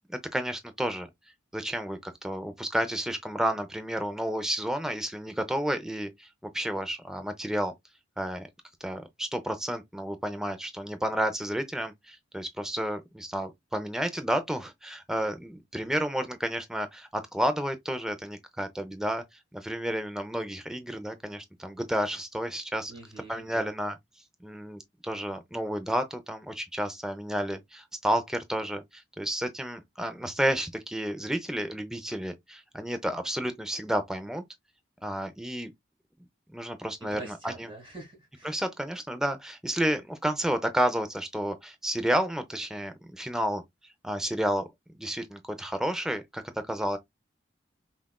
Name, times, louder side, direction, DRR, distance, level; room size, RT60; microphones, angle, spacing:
voice 1, 0.3-1.1 1.5-6.3 6.5-7.7 8.2-8.5 8.8-19.2 19.5-22.9 23.3-24.0 24.4-34.4 35.0-35.7 36.5-37.7 38.4-43.6 44.0-44.7 45.0-47.0, equal, 5° right, 0.5 m, -31 dB
voice 2, 22.9-23.7 37.0-38.6, right 2 dB, 25° right, 2.0 m, -45 dB
5.5 x 2.4 x 2.2 m
head